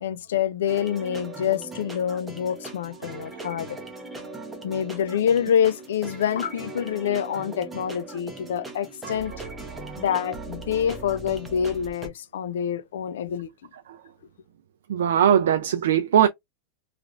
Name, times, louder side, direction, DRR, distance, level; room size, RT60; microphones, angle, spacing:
voice 1, 0.0-3.8 4.6-9.3 10.0-13.5, left 8 dB, 85° left, 0.4 m, -26 dB
sound 1, 0.7-12.1, right 2 dB, 5° right, 0.7 m, -39 dB
voice 2, 14.9-16.3, right 9 dB, 90° right, 0.4 m, -19 dB
3.2 x 2.4 x 2.4 m
supercardioid pair, 150°, 0 cm